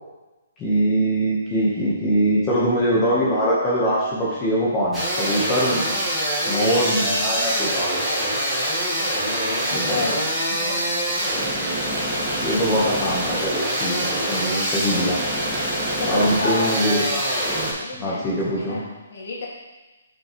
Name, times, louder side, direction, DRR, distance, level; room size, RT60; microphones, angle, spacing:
voice 1, 0.6-5.8 6.5-7.9 9.7-10.2 12.3-15.2 16.0-17.3 18.0-18.8, equal, 15° left, -7 dB, 1.2 m, -22 dB
sound 1, 4.9-17.7, right 1 dB, ahead, 1.6 m, -24 dB
voice 2, 9.2-10.2 10.5-11.2 16.0-16.8 17.8-19.5, left 3 dB, 60° left, -3 dB, 2.1 m, -31 dB
8.2 x 5.4 x 3.1 m, 1.2 s
hypercardioid pair, 170°, 0 cm